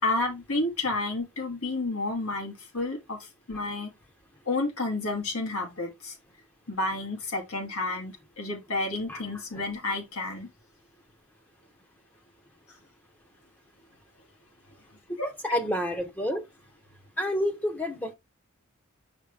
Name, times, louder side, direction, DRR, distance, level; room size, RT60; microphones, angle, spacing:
voice 1, 0.0-3.9 4.5-6.1 6.7-10.5 15.2-15.3, left 2 dB, 85° left, 2.5 m, -30 dB
voice 2, 15.2-16.4 17.2-18.1, equal, 10° left, 0.9 m, -29 dB
6.7 x 5.0 x 3.3 m
head